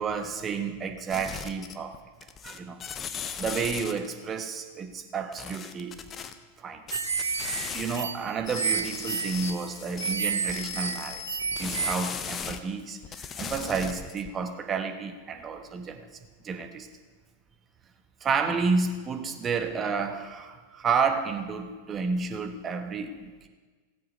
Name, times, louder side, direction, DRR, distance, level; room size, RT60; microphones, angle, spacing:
voice 1, 0.0-2.0 2.4-2.8 3.4-6.0 6.6-6.8 7.7-16.1 16.4-16.9 18.2-23.5, right 5 dB, 25° right, 5 dB, 1.3 m, -31 dB
sound 1, 1.1-4.1 5.3-6.3 6.9-8.0 8.4-12.6 13.0-14.3, left 7 dB, 25° left, 0.7 m, -37 dB
sound 2, 6.9-11.9, right 6 dB, 70° right, 0.4 m, -31 dB
17.0 x 7.7 x 5.3 m, 1.4 s
figure-of-eight pair, 90°, 0 cm